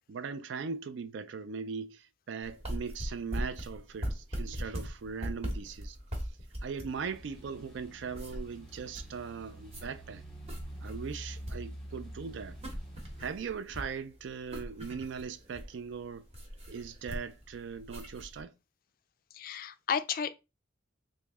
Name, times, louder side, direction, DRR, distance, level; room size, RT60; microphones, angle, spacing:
voice 1, 0.1-6.0 6.6-10.2 10.8-12.6 13.2-16.3 16.7-18.5, right 6 dB, 65° right, 0.4 m, -39 dB
sound 1, 2.4-18.4, equal, 35° right, 0.9 m, -40 dB
sound 2, 6.9-13.3, right 1 dB, ahead, 1.0 m, -47 dB
voice 2, 19.3-20.3, left 7 dB, 45° left, 0.3 m, -32 dB
3.1 x 2.6 x 3.5 m
head